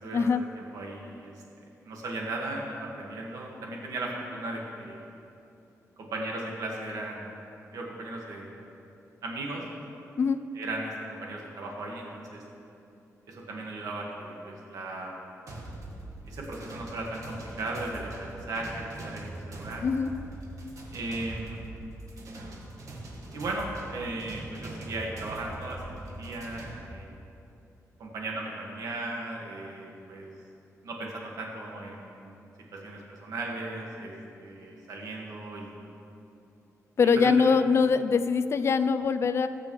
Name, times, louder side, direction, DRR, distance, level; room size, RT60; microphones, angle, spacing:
voice 1, 0.0-0.4 0.7-1.3 1.8-5.0 6.0-7.4 7.7-8.5 9.2-9.6 10.5-10.9 11.2-12.4 13.3-15.2 16.3-19.8 20.9-21.6 23.3-27.1 28.0-30.3 30.8-32.5 32.8-34.1 34.4-35.8 37.1-37.3, right 2 dB, 90° right, -1 dB, 1.8 m, -36 dB
sound 1, 15.5-26.8, right 1 dB, 65° right, 1.7 m, -42 dB
voice 2, 19.8-20.1 37.0-39.5, left 5 dB, 50° left, 11 dB, 0.5 m, -23 dB
20.0 x 6.9 x 3.2 m, 2.7 s
wide cardioid pair, 120°, 6 cm